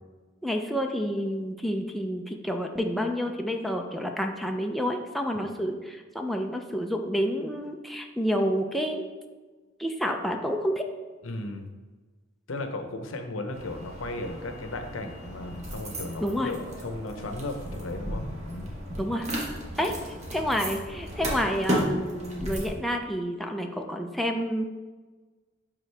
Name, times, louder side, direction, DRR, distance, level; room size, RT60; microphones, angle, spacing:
voice 1, 0.4-9.0 9.8-10.9 16.2-16.5 19.0-19.3 19.8-19.9 20.3-24.6, equal, ahead, 2 dB, 0.5 m, -29 dB
voice 2, 11.2-11.7 12.5-18.7, left 2 dB, 80° left, 6 dB, 0.8 m, -35 dB
sound 1, 13.5-22.7, equal, 35° right, 1.4 m, -34 dB
11.0 x 3.8 x 3.3 m, 1.3 s
head